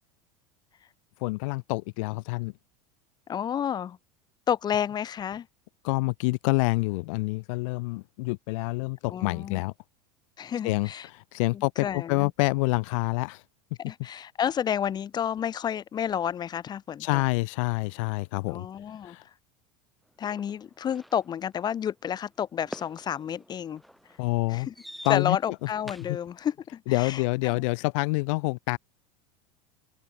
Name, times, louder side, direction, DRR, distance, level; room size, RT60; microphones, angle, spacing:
voice 1, 1.2-2.5 5.8-9.7 10.6-13.4 17.0-18.7 19.0-19.2 24.2-24.7 25.0-25.4 26.9-28.8, left 25 dB, 70° left, 1.1 m, -27 dB
voice 2, 3.3-4.0 4.5-5.5 9.1-9.6 10.4-11.1 11.5-12.3 13.9-17.2 18.5-19.2 20.2-23.8 24.5-24.7 25.1-27.6, left 9 dB, 25° left, 3.4 m, -31 dB
sound 1, 20.2-26.3, equal, ahead, 4.6 m, -47 dB
open air
supercardioid pair, 160°, 17 cm